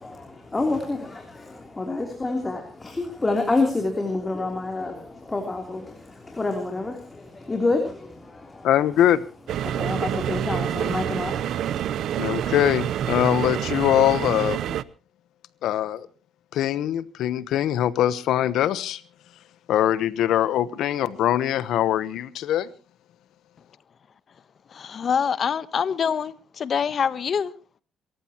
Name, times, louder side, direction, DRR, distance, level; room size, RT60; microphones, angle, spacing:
voice 1, 0.0-8.7 9.6-11.9, left 3 dB, 20° left, 3.4 m, -28 dB
voice 2, 8.6-9.2 12.2-14.6 15.6-16.1 16.5-19.0 19.7-22.7, left 11 dB, 80° left, 1.0 m, -22 dB
sound 1, 9.5-14.8, right 10 dB, 75° right, 0.7 m, -27 dB
voice 3, 24.7-27.5, left 7 dB, 50° left, 1.1 m, -25 dB
28.0 x 14.5 x 3.0 m
cardioid pair, 90°, 0 cm